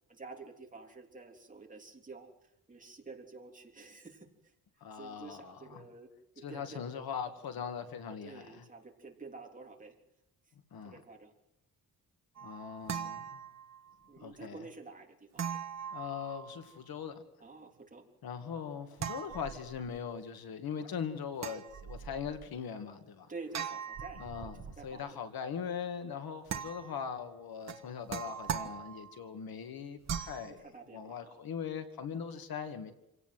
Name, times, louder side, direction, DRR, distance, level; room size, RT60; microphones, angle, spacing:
voice 1, 0.1-4.3 4.9-6.1 6.5-6.8 8.2-9.9 10.8-11.3 12.4-12.5 14.1-15.4 17.4-18.1 23.3-24.2 24.8-25.2 30.4-31.4, right 3 dB, 20° right, 3.4 m, -49 dB
voice 2, 4.8-5.8 6.4-8.6 10.7-11.0 12.4-13.4 14.2-14.6 15.9-17.2 18.2-23.3 24.2-30.7 30.9-32.9, left 7 dB, 75° left, 2.3 m, -40 dB
sound 1, 12.4-13.9 15.4-16.8 19.0-20.0 21.4-22.4 23.5-25.0 26.5-27.1 27.7-29.2 30.1-30.5, right 8 dB, 45° right, 1.5 m, -40 dB
28.0 x 17.5 x 7.8 m
wide cardioid pair, 175°, 37 cm